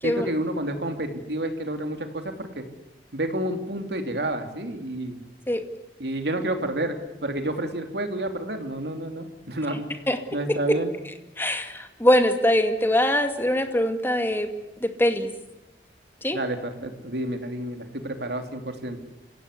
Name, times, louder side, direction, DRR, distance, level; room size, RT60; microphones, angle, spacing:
voice 1, 0.0-2.7 3.1-5.2 6.0-9.9 10.3-10.9 16.3-19.0, right 1 dB, 65° right, 6 dB, 3.1 m, -30 dB
voice 2, 11.4-14.5 14.8-15.3 16.2-16.4, left 1 dB, 15° left, 6 dB, 2.3 m, -22 dB
28.5 x 16.5 x 8.4 m, 0.98 s
head